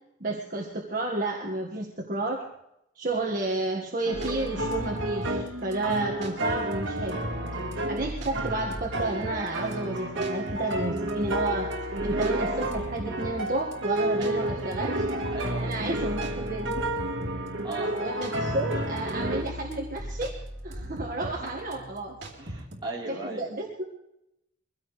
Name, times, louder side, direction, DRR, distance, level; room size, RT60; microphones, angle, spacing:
voice 1, 0.2-2.5 3.0-7.2 7.9-11.8 12.0-15.0 15.6-16.8 18.0-20.4 20.6-22.2 23.1-23.8, right 2 dB, 45° right, -1 dB, 1.7 m, -31 dB
sound 1, 4.0-19.4, right 1 dB, 85° right, 1.8 m, -31 dB
sound 2, 4.1-22.8, equal, 60° right, 3.6 m, -39 dB
voice 2, 14.2-14.5 15.3-16.4 17.6-18.0 21.3-21.5 22.4-23.5, right 2 dB, 25° right, -4 dB, 3.9 m, -37 dB
23.0 x 16.5 x 3.3 m, 0.83 s
head